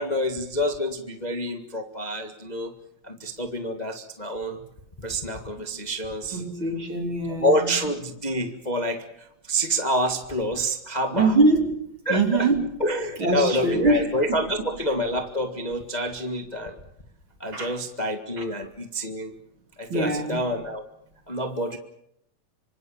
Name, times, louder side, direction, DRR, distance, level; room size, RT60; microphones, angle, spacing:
voice 1, 0.0-2.7 3.0-4.6 5.0-6.4 7.3-11.3 12.0-12.5 12.8-16.7 17.4-19.3 19.8-20.8 21.3-21.8, equal, 40° left, 0.5 m, -27 dB
voice 2, 6.3-7.7 11.1-12.7 13.2-14.1 17.5-17.8 18.4-18.5 19.9-20.4, right 3 dB, 35° right, 3.7 m, -23 dB
26.5 x 25.5 x 7.2 m
omnidirectional pair, 4.2 m